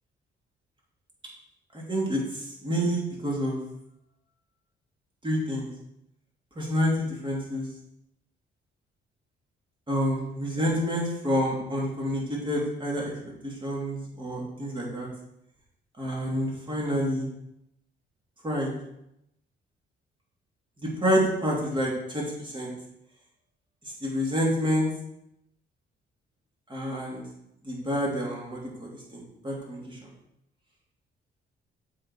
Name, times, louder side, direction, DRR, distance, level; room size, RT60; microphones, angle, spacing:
voice 1, 1.7-3.6 5.2-5.7 6.6-7.7 9.9-13.1 13.4-15.1 16.0-17.3 18.4-18.7 20.8-22.7 24.0-24.9 26.7-27.2 27.6-30.0, equal, 25° right, -4 dB, 3.1 m, -28 dB
7.2 x 4.6 x 5.0 m, 0.81 s
cardioid pair, 90°, 20 cm